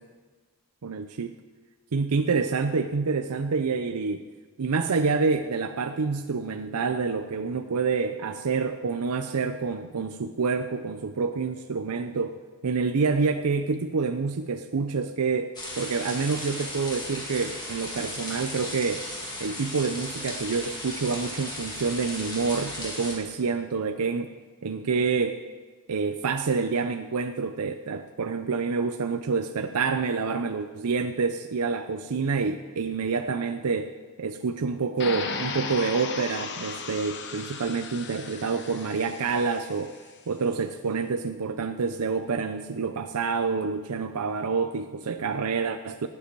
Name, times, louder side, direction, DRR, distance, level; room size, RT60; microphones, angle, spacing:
voice 1, 0.8-1.3 1.9-4.2 4.6-12.4 12.6-19.1 19.4-24.3 24.6-25.4 25.9-33.9 34.2-39.9 40.3-46.1, right 4 dB, 90° right, 8 dB, 0.6 m, -27 dB
sound 1, 15.5-23.1, left 1 dB, 20° left, 2.4 m, -36 dB
sound 2, 35.0-40.0, left 5 dB, 50° left, 1.1 m, -36 dB
18.5 x 7.8 x 4.6 m, 1.4 s
head